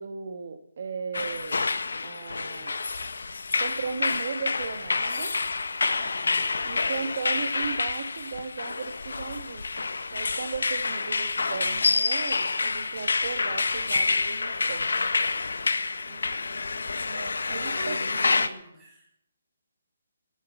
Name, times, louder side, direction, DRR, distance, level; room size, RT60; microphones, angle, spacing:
voice 1, 0.0-1.7 2.0-2.7 3.6-5.3 6.6-14.9 17.1-17.9, right 5 dB, 50° right, 6 dB, 1.5 m, -36 dB
sound 1, 1.1-18.5, left 4 dB, 85° left, 1.4 m, -28 dB
voice 2, 5.9-6.5 16.0-17.1 17.5-19.1, right 1 dB, 10° right, -5 dB, 7.3 m, -45 dB
19.5 x 9.5 x 7.1 m, 0.72 s
hypercardioid pair, 170°, 0 cm